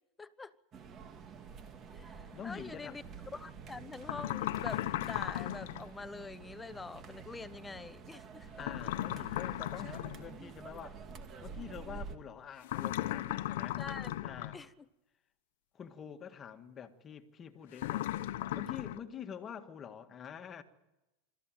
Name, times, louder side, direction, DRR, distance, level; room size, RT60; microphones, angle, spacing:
voice 1, 0.2-0.5 1.9-3.0 3.3-8.7 13.3-14.3 14.5-14.8, left 3 dB, 10° left, 0.9 m, -45 dB
sound 1, 0.7-12.2, right 5 dB, 35° right, 2.1 m, -49 dB
voice 2, 2.0-3.0 8.6-11.0 11.4-13.8 14.2-14.6 15.7-18.1 18.5-20.6, left 8 dB, 30° left, 1.7 m, -46 dB
sound 2, 4.0-5.9 8.6-10.2 12.6-14.6 17.8-19.0, left 14 dB, 75° left, 1.0 m, -36 dB
25.0 x 14.0 x 9.1 m
supercardioid pair, 125°, 0 cm